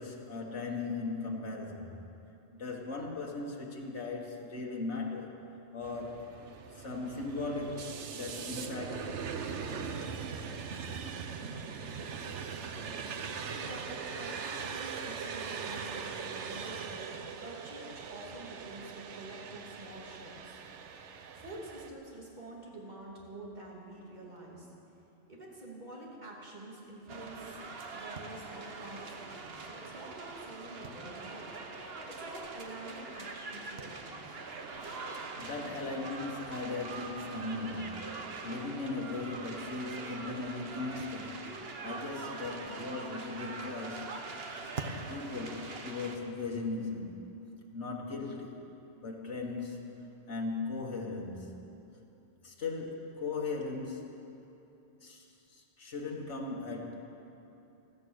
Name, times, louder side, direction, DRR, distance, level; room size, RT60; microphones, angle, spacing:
voice 1, 0.0-2.0 2.5-5.3 5.7-6.3 6.7-9.3 35.1-41.5 41.8-44.4 45.1-47.3 47.7-48.6 49.0-49.9 50.3-51.8 52.4-54.2 55.0-56.9, left 3 dB, 75° left, -1 dB, 2.0 m, -38 dB
sound 1, 5.8-21.9, right 6 dB, 80° right, 1.1 m, -41 dB
voice 2, 13.2-16.9 17.4-20.6 21.3-24.7 25.3-27.6 27.9-31.5 31.7-34.4, right 1 dB, 40° right, -4 dB, 2.9 m, -47 dB
sound 2, 27.1-46.2, right 3 dB, 60° right, 1.3 m, -43 dB
15.5 x 14.0 x 6.5 m, 2.9 s
omnidirectional pair, 1.2 m